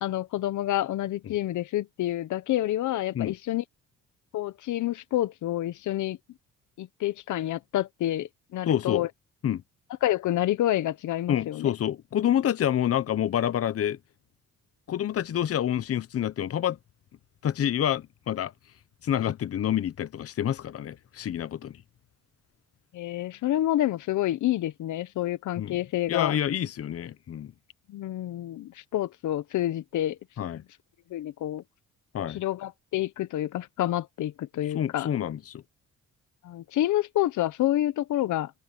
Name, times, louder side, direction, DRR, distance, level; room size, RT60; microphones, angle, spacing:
voice 1, 0.0-3.6 4.3-6.2 6.8-9.1 10.0-11.7 22.9-26.4 27.9-30.2 30.5-30.6 31.1-31.6 32.3-35.1 36.4-38.5, left 14 dB, 75° left, 1.0 m, -28 dB
voice 2, 8.7-9.1 9.4-9.6 11.3-14.0 14.9-16.8 17.4-18.5 19.0-21.8 25.6-25.7 26.1-27.5 30.4-30.6 32.1-32.4 34.7-35.6, left 10 dB, 50° left, 0.9 m, -27 dB
cardioid pair, 90°, 30 cm